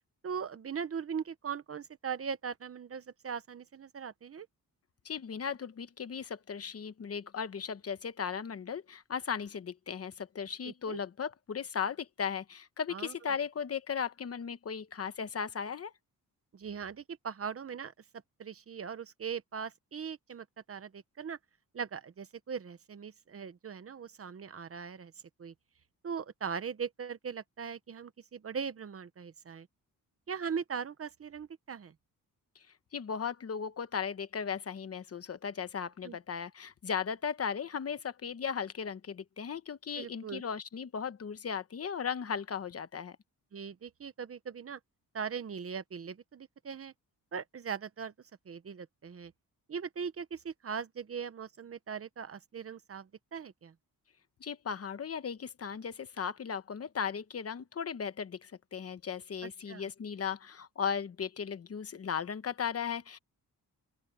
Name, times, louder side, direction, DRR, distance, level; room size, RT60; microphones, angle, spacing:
voice 1, 0.2-4.5 10.6-11.0 12.9-13.1 16.5-17.9 18.4-21.4 21.7-25.1 25.4-25.5 26.0-29.7 30.3-31.9 36.0-36.2 39.9-40.4 43.5-44.8 45.1-46.9 47.3-48.1 48.4-49.3 49.7-53.7 59.4-59.8, right 6 dB, 40° right, 0.9 m, -40 dB
voice 2, 5.0-15.9 32.9-43.2 54.4-63.2, left 7 dB, 40° left, 1.0 m, -37 dB
open air
wide cardioid pair, 175°, 35 cm